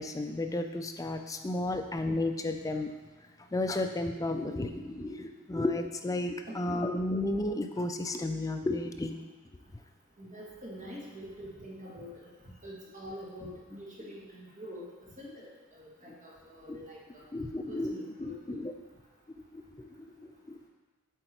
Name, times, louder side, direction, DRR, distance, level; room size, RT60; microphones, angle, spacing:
voice 1, 0.0-2.9 3.5-9.2 16.1-16.2 16.7-16.8 17.3-18.7 19.5-20.6, left 2 dB, 15° left, 6 dB, 0.4 m, -33 dB
voice 2, 10.2-12.3 12.6-14.9 15.2-17.2 17.7-18.7, equal, 35° right, -4 dB, 1.6 m, -45 dB
8.1 x 3.9 x 4.4 m, 1.3 s
head